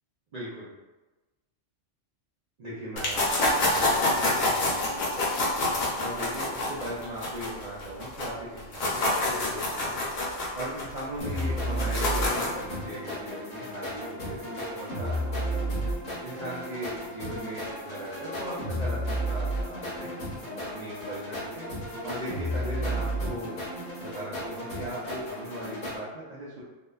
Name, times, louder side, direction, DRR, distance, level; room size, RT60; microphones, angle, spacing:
voice 1, 0.3-0.7 2.6-5.5 6.0-10.0 10.5-15.6 16.2-20.1 20.6-21.7 22.0-23.6 24.0-26.6, right 1 dB, 65° right, -7 dB, 0.4 m, -39 dB
sound 1, 3.0-8.3 8.6-12.6, left 2 dB, 85° left, 1.1 m, -27 dB
sound 2, 11.2-26.0, equal, 45° left, 0.8 m, -33 dB
2.8 x 2.0 x 2.2 m, 1.1 s
omnidirectional pair, 1.3 m